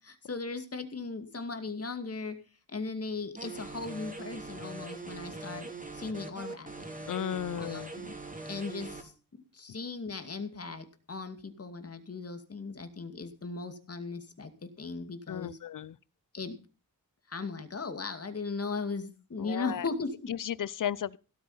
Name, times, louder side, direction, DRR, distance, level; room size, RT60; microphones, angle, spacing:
voice 1, 0.0-2.4 2.7-5.7 5.9-6.9 7.6-8.1 8.5-15.6 16.3-16.6 17.3-20.3, left 4 dB, 45° left, 2.4 m, -38 dB
sound 1, 3.4-9.0, right 3 dB, 25° right, 3.6 m, -42 dB
voice 2, 7.1-7.9 15.3-16.0 19.4-19.9 20.3-21.2, left 10 dB, 65° left, 0.7 m, -34 dB
16.5 x 8.6 x 5.6 m
wide cardioid pair, 110°, 34 cm